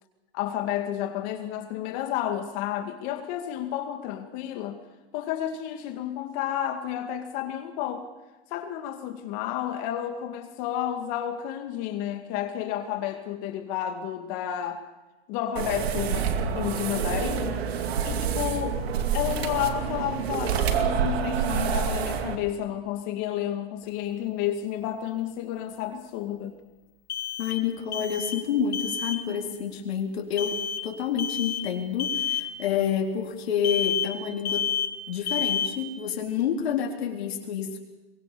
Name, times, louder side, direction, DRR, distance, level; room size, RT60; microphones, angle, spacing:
voice 1, 0.3-4.8 5.1-8.1 8.5-14.8 15.3-18.8 19.1-26.6, left 11 dB, 55° left, 5 dB, 2.3 m, -31 dB
sound 1, 15.6-22.4, right 7 dB, 85° right, 2.5 m, -27 dB
sound 2, 23.8-23.9 27.1-27.7 27.9-28.5 28.7-29.2 30.4-30.9 31.2-31.7 32.0-32.5 33.6-34.2 34.4-35.0 35.3-35.8, left 8 dB, 30° left, 1.3 m, -29 dB
voice 2, 27.4-34.7 35.1-37.8, left 7 dB, 90° left, 1 dB, 3.8 m, -28 dB
23.0 x 21.0 x 6.9 m, 1.1 s
supercardioid pair, 130°, 30 cm